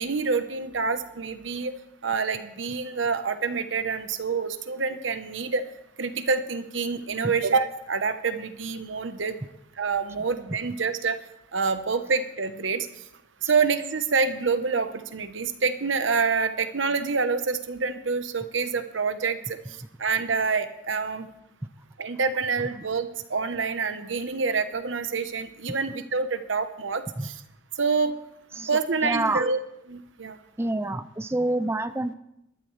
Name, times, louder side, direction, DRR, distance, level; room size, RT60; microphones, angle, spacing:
voice 1, 0.0-1.7 2.0-5.6 6.0-9.3 9.8-11.2 11.5-12.9 13.4-19.4 20.0-21.3 22.0-27.3 27.8-28.1 28.7-29.6 29.9-30.4, right 4 dB, 90° right, 9 dB, 1.0 m, -27 dB
voice 2, 29.0-29.4 30.6-32.1, right 2 dB, 15° right, 11 dB, 0.4 m, -27 dB
19.5 x 12.5 x 3.3 m, 0.83 s
head